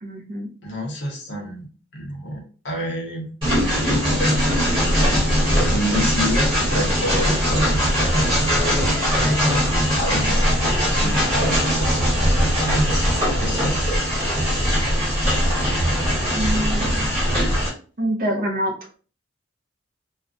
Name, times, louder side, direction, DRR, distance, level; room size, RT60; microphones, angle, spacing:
voice 1, 0.0-0.5 16.3-17.4 18.0-18.7, right 1 dB, 45° right, 1 dB, 0.5 m, -26 dB
voice 2, 0.6-3.3 4.2-4.4 5.7-9.4 10.0-13.1 13.4-13.8 16.4-16.6, equal, 55° left, 0 dB, 0.8 m, -29 dB
Train, 3.4-17.7, equal, 25° right, 1.2 m, -20 dB
2.4 x 2.1 x 2.5 m, 0.39 s
head